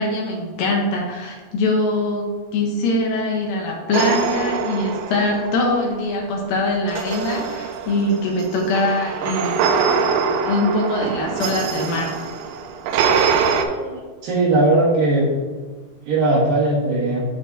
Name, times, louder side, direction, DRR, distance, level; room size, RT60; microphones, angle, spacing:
voice 1, 0.0-9.6 10.4-12.1, left 2 dB, 75° left, 0 dB, 2.3 m, -22 dB
sound 1, 3.9-5.9 6.9-13.7, right 6 dB, 90° right, 2.8 m, -23 dB
voice 2, 13.6-15.3 16.1-17.2, right 2 dB, 65° right, -7 dB, 2.6 m, -19 dB
11.5 x 4.4 x 2.6 m, 1.4 s
omnidirectional pair, 4.9 m